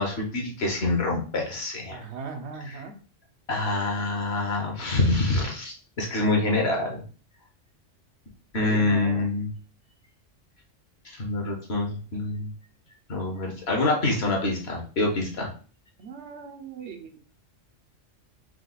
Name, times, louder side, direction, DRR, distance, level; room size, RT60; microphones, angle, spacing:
voice 1, 0.0-2.0 3.5-7.0 8.5-9.5 11.2-12.5 13.1-15.5, left 2 dB, 55° left, 1 dB, 1.3 m, -26 dB
voice 2, 1.9-2.9 8.6-9.3 16.0-17.2, right 5 dB, 65° right, 4 dB, 0.9 m, -39 dB
4.7 x 2.3 x 3.9 m, 0.39 s
omnidirectional pair, 1.3 m